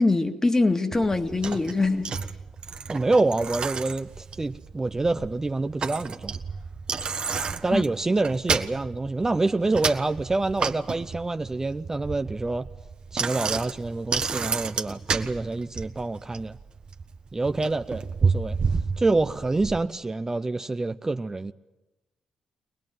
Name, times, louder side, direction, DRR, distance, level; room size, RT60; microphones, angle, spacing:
voice 1, 0.0-2.1 7.7-7.8, left 3 dB, 25° left, 2.0 m, -23 dB
Bicycle, 0.9-19.8, right 5 dB, 50° right, 1.4 m, -31 dB
voice 2, 2.9-6.4 7.6-12.7 13.1-16.6 17.3-18.6 19.0-21.5, right 2 dB, 25° right, 0.8 m, -26 dB
23.5 x 20.0 x 9.2 m
hypercardioid pair, 40°, 2 cm